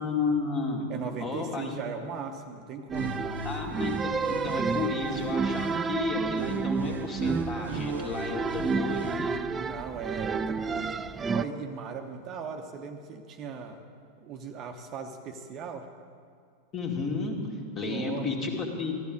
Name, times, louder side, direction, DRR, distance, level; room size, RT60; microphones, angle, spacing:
voice 1, 0.0-0.9 1.2-1.8 3.4-3.9 4.3-9.4 16.7-17.4 17.8-18.9, left 4 dB, 30° left, 1 dB, 2.2 m, -32 dB
voice 2, 0.9-3.5 9.6-13.8 14.2-15.9 17.8-18.3, right 5 dB, 35° right, 5 dB, 0.9 m, -38 dB
sound 1, 2.9-11.4, right 5 dB, 15° right, 0.3 m, -30 dB
sound 2, 2.9-5.9 6.4-9.4, equal, 75° right, 0.9 m, -40 dB
14.5 x 12.5 x 5.2 m, 2.3 s
figure-of-eight pair, 90°, 0 cm